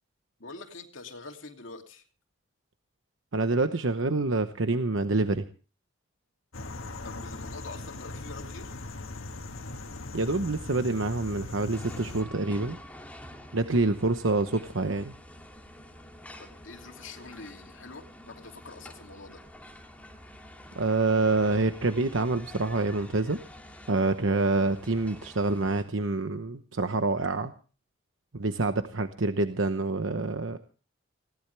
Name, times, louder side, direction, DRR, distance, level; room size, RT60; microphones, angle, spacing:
voice 1, 0.4-2.0 7.0-8.7 16.4-19.4, left 3 dB, 70° left, 3 dB, 2.8 m, -45 dB
voice 2, 3.3-5.4 10.1-12.8 13.5-15.1 20.8-23.4 23.9-27.5 28.3-30.6, right 3 dB, 70° right, 8 dB, 1.0 m, -27 dB
sound 1, 6.5-12.2, left 2 dB, 90° left, 1.7 m, -40 dB
sound 2, 11.7-25.8, left 1 dB, 5° left, 2.4 m, -48 dB
20.5 x 17.5 x 3.4 m, 0.38 s
head